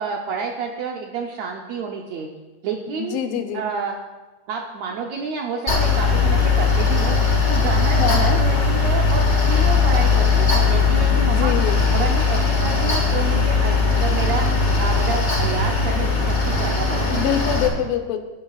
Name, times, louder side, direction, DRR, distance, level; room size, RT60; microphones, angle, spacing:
voice 1, 0.0-2.3 2.6-3.3 3.5-4.0 4.5-7.2 7.5-11.6 11.9-14.5 14.8-17.2, right 5 dB, 75° right, 1 dB, 1.6 m, -29 dB
voice 2, 2.9-3.7 8.0-8.4 11.3-11.8 17.1-18.2, left 8 dB, 90° left, 6 dB, 2.7 m, -24 dB
Mechanical fan, 5.7-17.7, left 4 dB, 35° left, 1.1 m, -19 dB
17.5 x 10.5 x 2.4 m, 1.2 s
omnidirectional pair, 3.9 m